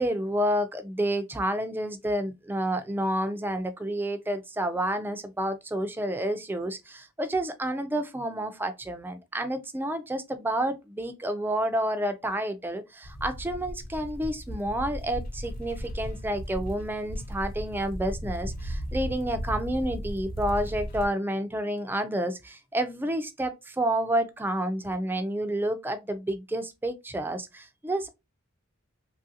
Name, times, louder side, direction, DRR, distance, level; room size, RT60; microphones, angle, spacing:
voice 1, 0.0-28.1, right 1 dB, 10° right, 0.3 m, -29 dB
sound 1, 13.0-21.1, equal, 45° left, 0.6 m, -36 dB
3.1 x 2.5 x 2.6 m
head